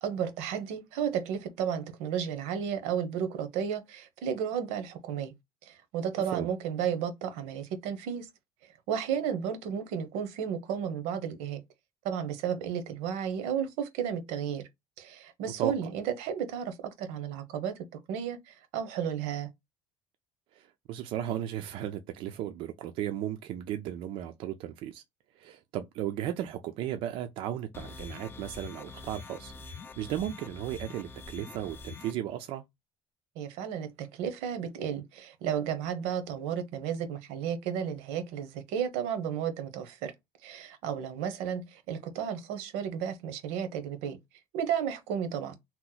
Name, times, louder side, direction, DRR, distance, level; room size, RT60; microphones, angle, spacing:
voice 1, 0.0-5.3 5.6-8.3 8.9-11.6 12.0-14.6 15.0-19.5 33.4-40.1 40.4-44.2 44.5-45.6, right 8 dB, 80° right, 0.8 m, -33 dB
voice 2, 20.5-25.0 25.4-32.6, right 11 dB, 55° right, 0.4 m, -35 dB
sound 1, 27.7-32.1, left 3 dB, 20° left, 0.4 m, -44 dB
2.9 x 2.1 x 3.8 m
cardioid pair, 150°, 11 cm